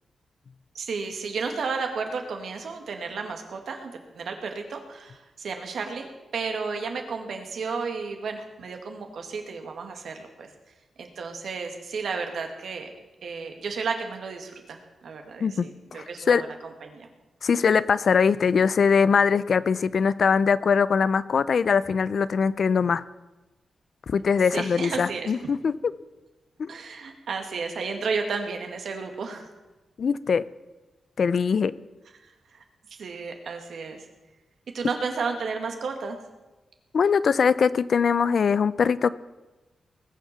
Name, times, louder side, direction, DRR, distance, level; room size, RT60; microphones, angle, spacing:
voice 1, 0.7-10.5 11.0-12.9 13.2-17.1 24.5-25.3 26.7-29.5 32.2-32.6 33.0-34.1 34.7-36.2, right 5 dB, 75° right, 4 dB, 2.1 m, -33 dB
voice 2, 15.9-16.4 17.4-23.0 24.1-25.8 26.6-26.7 30.0-30.4 31.2-31.7 36.9-39.1, left 6 dB, 65° left, 17 dB, 0.5 m, -22 dB
20.0 x 7.4 x 6.8 m, 1.1 s
cardioid pair, 75°, 0 cm